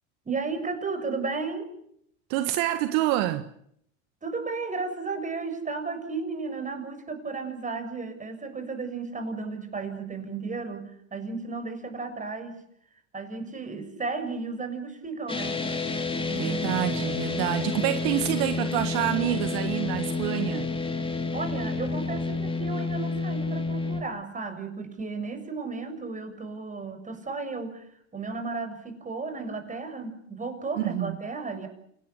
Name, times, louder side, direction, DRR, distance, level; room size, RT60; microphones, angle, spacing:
voice 1, 0.3-1.7 4.2-12.6 13.1-15.6 16.2-16.8 21.3-27.9 28.1-31.7, right 4 dB, 20° right, 7.0 m, -34 dB
voice 2, 2.3-3.5 16.4-20.7 30.8-31.2, right 14 dB, 60° right, 1.7 m, -27 dB
sound 1, 15.3-24.0, left 3 dB, 15° left, 3.4 m, -29 dB
29.0 x 18.5 x 8.3 m
hypercardioid pair, 100°, 39 cm